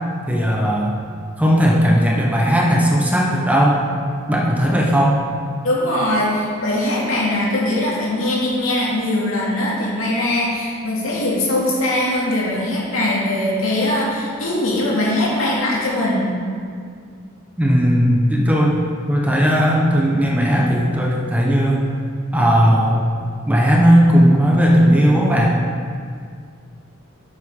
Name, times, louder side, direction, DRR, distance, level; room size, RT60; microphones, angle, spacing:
voice 1, 0.3-1.0 1.4-3.8 4.3-5.2 17.6-18.7 19.1-21.9 22.3-23.0 23.5-25.6, equal, 5° right, -3 dB, 0.9 m, -16 dB
voice 2, 5.6-16.3, left 1 dB, 80° left, -5 dB, 2.5 m, -21 dB
10.0 x 7.8 x 3.7 m, 2.1 s
head